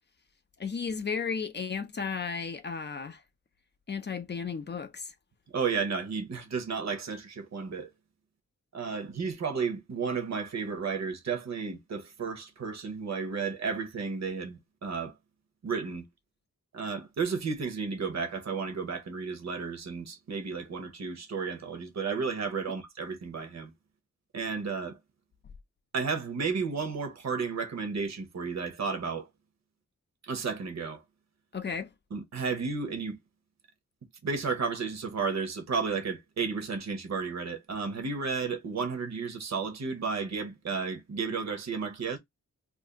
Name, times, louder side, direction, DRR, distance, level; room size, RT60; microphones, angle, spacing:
voice 1, 0.6-3.2 3.9-5.1 31.5-31.9, left 6 dB, 35° left, 0.4 m, -34 dB
voice 2, 5.5-7.9 8.7-15.1 15.6-16.0 16.7-23.7 24.3-25.0 25.9-29.3 30.2-31.0 32.1-33.2 34.2-42.2, right 5 dB, 60° right, 0.8 m, -33 dB
2.6 x 2.4 x 3.4 m
wide cardioid pair, 130°, 30 cm